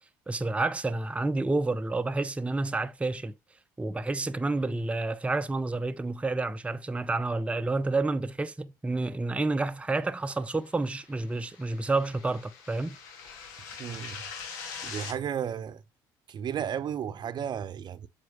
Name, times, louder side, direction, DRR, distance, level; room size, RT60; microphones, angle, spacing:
voice 1, 0.3-3.3 3.8-13.0, right 3 dB, 10° right, 0.6 m, -29 dB
sound 1, 10.7-15.1, left 6 dB, 80° left, 2.0 m, -43 dB
voice 2, 13.8-14.2 14.8-15.8 16.3-18.1, right 8 dB, 45° right, 0.7 m, -33 dB
7.6 x 4.3 x 3.3 m
hypercardioid pair, 65°, 10 cm